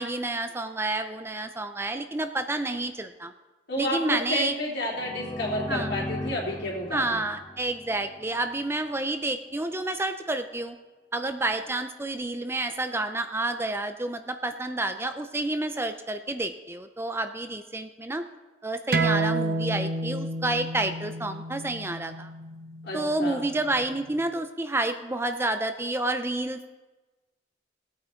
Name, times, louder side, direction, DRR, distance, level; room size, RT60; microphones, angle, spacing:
voice 1, 0.0-3.3 3.8-4.6 5.7-5.9 6.9-10.8 11.1-18.2 18.6-22.3 22.9-26.7, right 2 dB, 15° right, 8 dB, 0.5 m, -29 dB
voice 2, 3.7-7.2 22.8-23.4, left 1 dB, 65° left, -3 dB, 3.4 m, -31 dB
sound 1, 4.9-8.6, left 1 dB, 15° left, 1.9 m, -37 dB
sound 2, 18.9-24.1, right 2 dB, 55° right, 0.9 m, -30 dB
17.5 x 8.7 x 4.5 m, 1.2 s
head